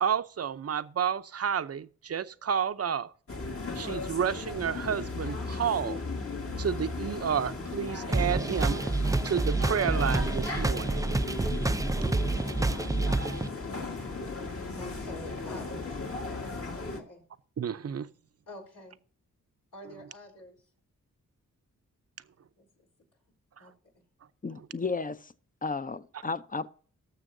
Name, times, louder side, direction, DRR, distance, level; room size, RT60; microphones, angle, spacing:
voice 1, 0.0-3.1 3.7-6.0 6.6-8.8 9.2-11.0 17.6-18.1 23.6-23.7, right 8 dB, 50° right, 0.6 m, -30 dB
sound 1, 3.3-17.0, left 3 dB, 45° left, 1.7 m, -36 dB
sound 2, 8.1-13.5, right 2 dB, 10° right, 0.4 m, -28 dB
voice 2, 12.4-12.9 14.0-17.2 18.5-19.0 19.7-20.7 22.5-22.7 23.6-23.7, left 2 dB, 75° left, 4.0 m, -48 dB
voice 3, 24.4-25.3 25.6-26.7, left 4 dB, 25° left, 0.7 m, -33 dB
18.5 x 6.9 x 2.7 m
cardioid pair, 70°, 32 cm